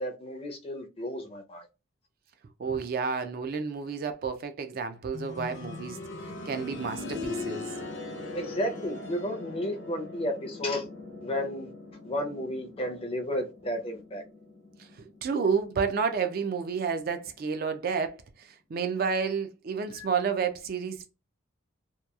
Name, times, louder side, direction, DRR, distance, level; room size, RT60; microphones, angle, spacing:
voice 1, 0.0-1.7 8.3-10.9 11.2-11.7 12.0-14.2 20.0-20.1, equal, 30° left, 0.5 m, -32 dB
voice 2, 2.6-6.0 6.5-7.7 15.0-21.1, right 5 dB, 50° right, 0.3 m, -30 dB
sound 1, 5.1-15.9 17.3-17.4, left 2 dB, 60° left, 0.8 m, -40 dB
2.8 x 2.2 x 2.2 m
head